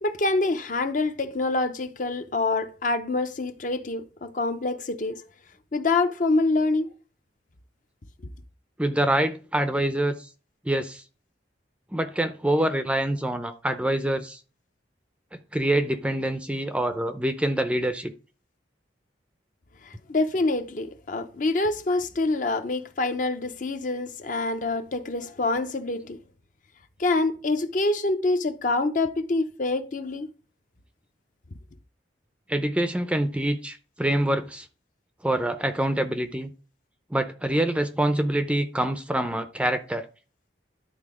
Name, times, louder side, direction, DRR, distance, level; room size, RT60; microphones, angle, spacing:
voice 1, 0.0-5.2 5.7-6.9 19.9-26.2 27.0-30.3, left 2 dB, 45° left, 0.7 m, -26 dB
voice 2, 8.8-10.2 10.7-11.0 11.9-14.4 15.5-18.1 32.5-34.7 35.2-36.5 37.1-40.0, right 1 dB, 5° right, 0.5 m, -25 dB
11.0 x 3.8 x 4.9 m
head